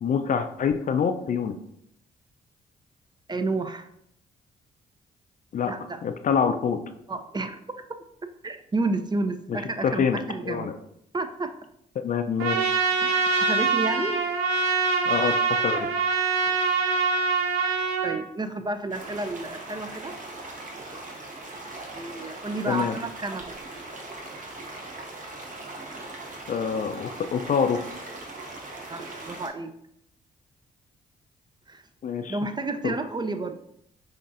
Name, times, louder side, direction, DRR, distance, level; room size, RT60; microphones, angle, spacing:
voice 1, 0.0-1.6 5.5-5.7 6.0-6.8 9.5-9.6 9.8-10.7 12.0-12.7 15.1-15.9 22.7-23.0 26.5-27.8 32.0-32.4 32.8-32.9, left 6 dB, 45° left, 8 dB, 0.4 m, -26 dB
voice 2, 3.3-3.9 5.6-6.0 7.1-7.8 8.4-10.7 11.1-11.5 13.0-14.2 16.5-16.6 18.0-20.2 21.9-23.6 28.9-29.7 31.7-31.8 32.3-33.6, right 3 dB, 25° right, 9 dB, 0.4 m, -31 dB
Trumpet, 12.4-18.2, right 4 dB, 90° right, 0.5 m, -24 dB
sound 1, 18.9-29.5, right 2 dB, 45° right, 1.0 m, -40 dB
5.3 x 2.5 x 2.5 m, 0.73 s
hypercardioid pair, 45°, 19 cm